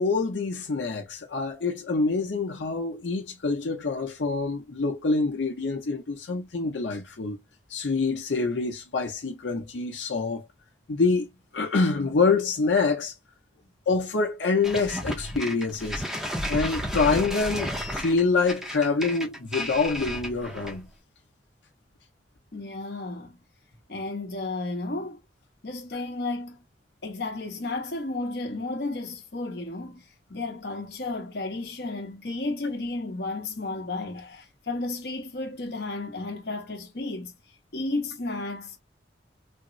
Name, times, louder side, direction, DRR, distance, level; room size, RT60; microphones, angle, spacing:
voice 1, 0.0-7.4 7.7-10.5 10.9-11.3 11.5-13.1 13.9-16.0 16.5-20.9, left 4 dB, 90° left, 0.7 m, -26 dB
sound 1, 14.6-20.9, equal, 5° right, 0.6 m, -32 dB
voice 2, 22.5-23.4 23.9-25.2 25.6-26.6 27.0-30.0 30.3-37.3 37.7-38.8, left 2 dB, 60° left, 0.8 m, -33 dB
3.5 x 2.0 x 2.5 m
head